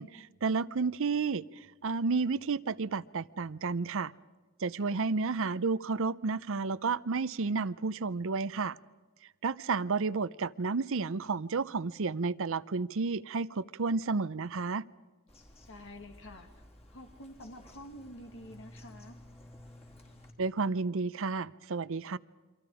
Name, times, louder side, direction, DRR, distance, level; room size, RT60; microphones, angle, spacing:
voice 1, 0.0-1.4 1.8-4.1 4.6-8.8 9.4-14.8 20.4-22.2, right 4 dB, 65° right, 18 dB, 0.6 m, -31 dB
Bird vocalization bird call bird song, 15.3-20.3, left 1 dB, 30° left, 3.6 m, -54 dB
voice 2, 15.7-16.6 16.9-19.2, left 1 dB, 60° left, 5 dB, 2.4 m, -48 dB
28.5 x 25.0 x 4.9 m, 1.3 s
head